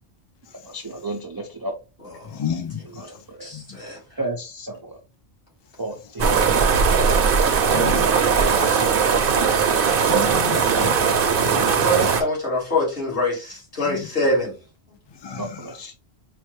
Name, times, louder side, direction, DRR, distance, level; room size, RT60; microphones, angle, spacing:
voice 1, 0.6-1.8 3.0-3.5 4.2-5.0 5.8-6.3 8.0-10.1 15.4-15.9, right 2 dB, 35° right, 0.4 m, -34 dB
voice 2, 2.2-3.2 3.5-3.8 6.2-6.6 6.9-7.2 7.5-8.1 10.1-11.0 11.3-12.0 13.8-14.1 15.1-15.7, left 8 dB, 35° left, 0.4 m, -33 dB
voice 3, 3.4-4.0 11.8-14.5, left 1 dB, 60° left, 2.2 m, -24 dB
sound 1, 6.2-12.2, right 6 dB, 60° right, 0.7 m, -19 dB
4.5 x 2.2 x 3.1 m
omnidirectional pair, 1.1 m